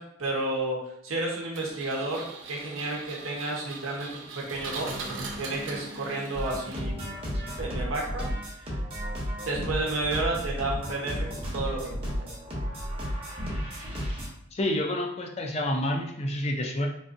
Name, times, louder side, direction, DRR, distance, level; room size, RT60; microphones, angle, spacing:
voice 1, 0.0-5.0 5.4-6.9 7.6-8.3 8.6-8.8 9.5-12.3, right 2 dB, 85° right, -1 dB, 0.9 m, -31 dB
Engine, 1.5-7.2, right 3 dB, 65° right, 0.5 m, -40 dB
sound 1, 6.3-14.3, equal, 30° right, 0.9 m, -33 dB
voice 2, 14.5-16.9, left 1 dB, 30° left, 1 dB, 0.4 m, -28 dB
3.8 x 2.6 x 2.5 m, 0.71 s
head